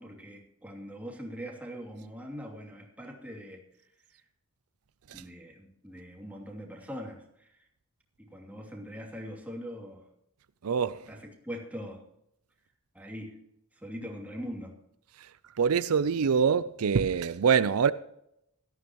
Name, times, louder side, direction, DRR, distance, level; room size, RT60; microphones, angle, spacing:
voice 1, 0.0-3.6 5.1-7.6 8.2-10.0 11.1-12.0 12.9-13.4 13.8-14.8, equal, 5° right, 2.8 m, -42 dB
voice 2, 10.6-11.0 15.6-17.9, right 6 dB, 75° right, 0.5 m, -25 dB
17.5 x 14.0 x 3.1 m
head